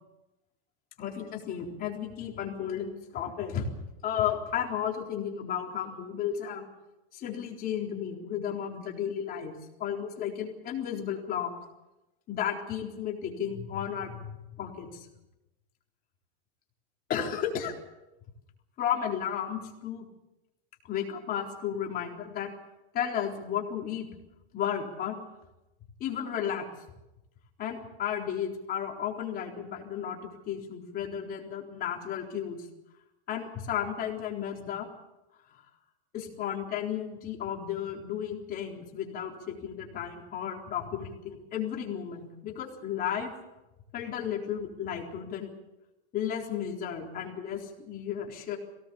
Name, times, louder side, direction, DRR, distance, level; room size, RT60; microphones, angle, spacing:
voice 1, 1.0-3.7 4.0-6.6 7.1-9.5 9.8-11.5 12.3-14.3 14.6-15.1 17.1-17.7 18.8-20.1 20.9-22.5 22.9-24.1 24.5-25.2 26.0-26.7 27.6-32.7 33.3-34.9 36.1-43.3 43.9-45.5 46.1-48.6, left 9 dB, 30° left, 0 dB, 3.9 m, -33 dB
23.0 x 18.0 x 7.1 m, 0.96 s
supercardioid pair, 150°, 32 cm